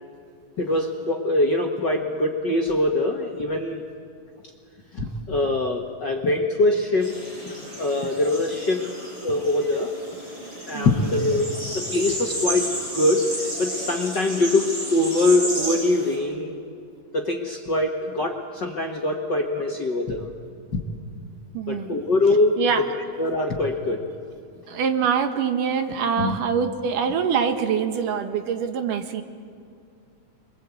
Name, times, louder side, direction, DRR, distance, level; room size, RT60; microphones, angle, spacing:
voice 1, 0.6-3.8 4.9-7.2 7.8-8.9 9.2-9.9 10.7-11.5 11.7-13.3 13.6-16.6 17.1-20.3 20.7-20.9 21.7-22.9 23.2-24.0 26.2-26.4, left 2 dB, 45° left, 1 dB, 1.6 m, -23 dB
sound 1, 7.0-16.2, right 1 dB, 35° right, 8.6 m, -33 dB
voice 2, 10.7-11.1 21.5-22.0 22.6-22.8 24.7-29.2, right 7 dB, 75° right, 7 dB, 2.8 m, -24 dB
27.0 x 22.5 x 8.4 m, 2.4 s
omnidirectional pair, 3.9 m